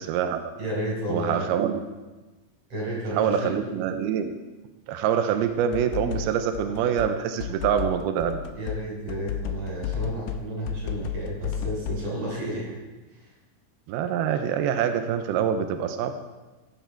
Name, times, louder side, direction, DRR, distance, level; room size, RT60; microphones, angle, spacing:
voice 1, 0.0-0.5 1.1-1.8 3.1-4.3 4.9-8.4 13.9-16.1, right 8 dB, 90° right, 8 dB, 2.2 m, -25 dB
voice 2, 0.6-1.6 2.7-3.6 8.5-12.7 13.1-13.3, right 1 dB, 30° right, -5 dB, 5.7 m, -32 dB
sound 1, 5.5-12.0, left 8 dB, 90° left, 2.2 m, -33 dB
16.0 x 9.0 x 4.6 m, 1.2 s
omnidirectional pair, 5.4 m